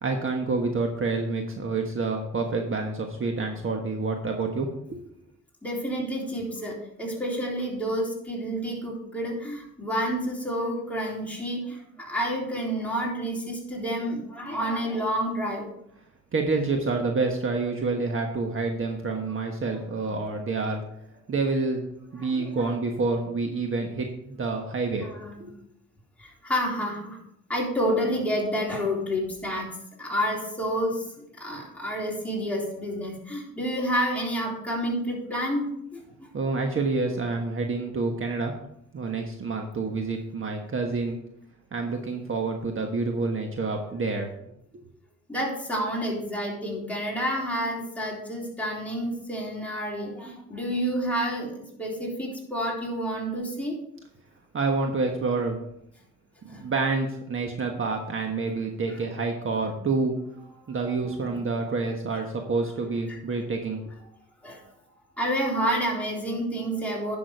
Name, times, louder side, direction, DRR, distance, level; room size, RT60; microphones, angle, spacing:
voice 1, 0.0-5.0 16.3-20.9 21.3-21.8 22.1-25.1 25.4-25.5 36.3-38.5 38.9-41.2 41.7-44.3 54.5-55.6 56.4-60.2 60.7-63.8, right 3 dB, 45° right, 3 dB, 1.4 m, -28 dB
voice 2, 5.6-15.7 22.2-22.7 25.0-25.5 26.2-27.2 27.5-29.7 30.0-31.1 31.4-36.3 45.3-53.8 56.5-56.6 59.6-59.7 61.2-61.3 63.1-63.2 64.4-64.6 65.2-67.2, equal, 5° left, -3 dB, 3.6 m, -29 dB
10.5 x 6.2 x 4.7 m, 0.75 s
cardioid pair, 90°, 30 cm